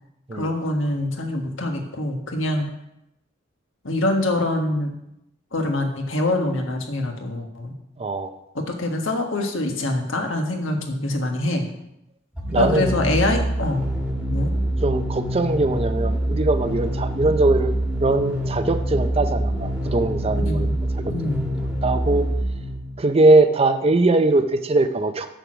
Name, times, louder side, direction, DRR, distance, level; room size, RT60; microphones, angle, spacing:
voice 1, 0.3-2.7 3.8-4.9 5.5-7.7 8.5-11.7 12.5-13.8 14.3-14.5 20.4-20.7 21.1-21.4, left 1 dB, 75° left, 3 dB, 1.4 m, -24 dB
voice 2, 8.0-8.3 12.5-12.9 14.8-17.7 18.0-20.7 21.2-21.3 21.8-22.3 23.0-25.3, right 2 dB, 30° right, 10 dB, 0.5 m, -20 dB
sound 1, 12.3-23.1, right 1 dB, 5° right, 1.4 m, -25 dB
6.9 x 6.2 x 6.1 m, 0.84 s
head